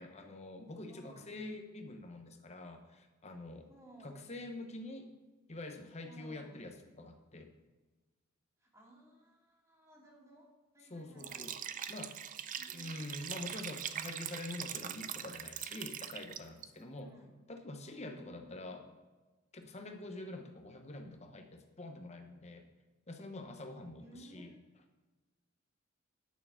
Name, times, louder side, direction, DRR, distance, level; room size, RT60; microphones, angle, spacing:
voice 1, 0.0-3.7 4.0-5.1 5.5-7.5 10.9-11.5 11.9-12.1 12.7-17.1 17.5-18.8 19.5-22.6 23.1-24.5, left 2 dB, 35° left, 5 dB, 1.0 m, -46 dB
voice 2, 0.9-1.4 3.7-4.3 6.0-6.7 8.6-10.5 10.7-11.4 12.6-13.0 16.7-17.4 17.8-18.9 19.8-20.3 23.9-24.8, right 1 dB, 15° right, -2 dB, 2.2 m, -58 dB
Liquid, 11.2-16.7, right 9 dB, 40° right, 0.4 m, -42 dB
9.3 x 6.7 x 5.8 m, 1.2 s
head